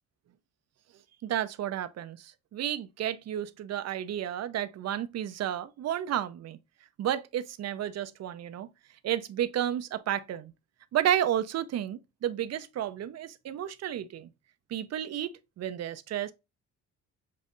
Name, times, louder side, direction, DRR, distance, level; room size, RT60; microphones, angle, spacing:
voice 1, 1.2-6.6 7.0-8.7 9.0-10.5 10.9-14.3 14.7-16.3, right 11 dB, 60° right, 0.6 m, -32 dB
7.4 x 2.6 x 2.5 m
cardioid pair, 90°, 30 cm